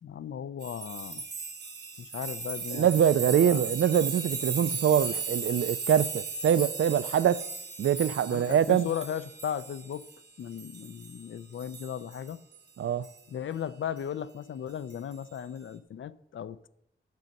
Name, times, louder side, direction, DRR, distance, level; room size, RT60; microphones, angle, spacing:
voice 1, 0.0-1.2 2.0-2.9 3.3-3.6 8.3-10.0 10.4-12.4 13.3-16.7, left 9 dB, 75° left, 0.5 m, -36 dB
sound 1, 0.6-11.3 11.6-12.6 13.0-13.2 14.9-15.1, right 4 dB, 60° right, 2.2 m, -37 dB
voice 2, 2.7-7.4 7.8-8.9 12.8-13.1, right 9 dB, 85° right, 0.4 m, -24 dB
10.5 x 5.3 x 7.5 m
wide cardioid pair, 115°, 20 cm